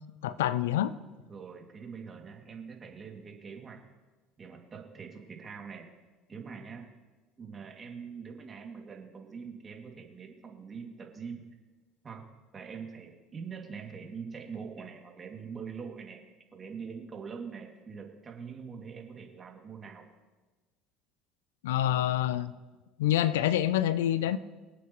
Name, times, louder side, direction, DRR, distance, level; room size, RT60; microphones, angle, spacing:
voice 1, 0.2-0.9 21.6-22.5 23.0-24.4, left 12 dB, 85° left, 16 dB, 0.5 m, -26 dB
voice 2, 1.3-3.8 4.4-5.9 6.3-6.9 7.4-11.5 12.0-12.3 12.5-16.2 16.5-20.1, right 6 dB, 35° right, 1 dB, 2.5 m, -43 dB
24.5 x 8.2 x 3.1 m, 1.2 s
hypercardioid pair, 75°, 0 cm